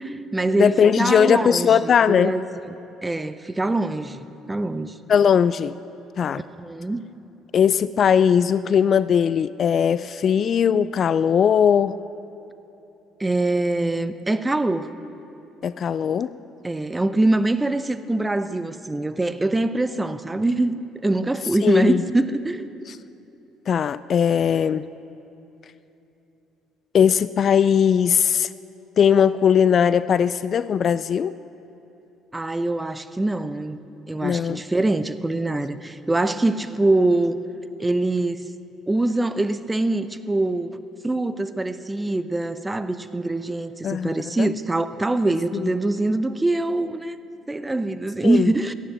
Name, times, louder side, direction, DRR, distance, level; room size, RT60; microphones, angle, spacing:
voice 1, 0.0-2.8 3.0-4.9 6.6-7.1 13.2-14.9 16.6-22.7 32.3-33.8 34.1-37.4 37.8-38.5 38.9-47.2 47.5-48.7, right 2 dB, 15° right, 12 dB, 0.7 m, -24 dB
voice 2, 0.6-2.3 5.1-5.8 6.2-6.4 7.5-12.0 15.6-16.4 21.6-22.0 22.9-23.0 23.7-24.9 26.9-28.5 29.0-31.3 34.2-34.6 43.8-44.5 45.5-45.7 48.2-48.5, left 7 dB, 45° left, 17 dB, 0.3 m, -19 dB
17.5 x 13.5 x 6.0 m, 2.9 s
figure-of-eight pair, 50°, 0 cm